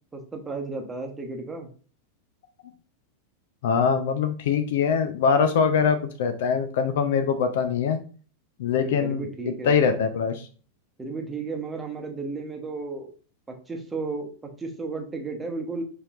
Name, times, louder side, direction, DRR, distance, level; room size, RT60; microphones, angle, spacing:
voice 1, 0.1-1.7 8.8-10.1 11.0-13.1 13.7-15.8, right 3 dB, 15° right, 3 dB, 1.0 m, -34 dB
voice 2, 3.6-8.0 8.6-9.2 9.6-10.4, left 6 dB, 55° left, 9 dB, 0.4 m, -23 dB
5.5 x 3.3 x 2.4 m, 0.40 s
figure-of-eight pair, 90°, 0 cm